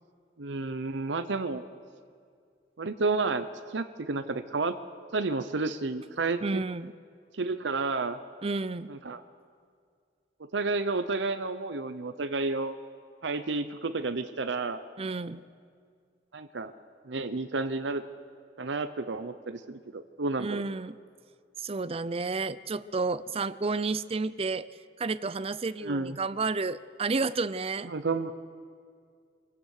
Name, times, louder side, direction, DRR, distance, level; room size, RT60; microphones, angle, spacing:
voice 1, 0.4-1.6 2.8-4.8 5.1-6.6 7.3-8.2 8.9-9.2 10.4-12.8 13.2-14.8 16.3-16.7 17.1-18.0 18.6-20.6 25.8-26.2 27.8-28.3, right 3 dB, 90° right, 10 dB, 0.8 m, -31 dB
voice 2, 6.4-6.9 8.4-8.9 15.0-15.4 20.4-21.0 21.6-24.7 25.0-27.9, right 3 dB, 35° right, 16 dB, 0.5 m, -31 dB
24.5 x 17.0 x 6.5 m, 2.2 s
head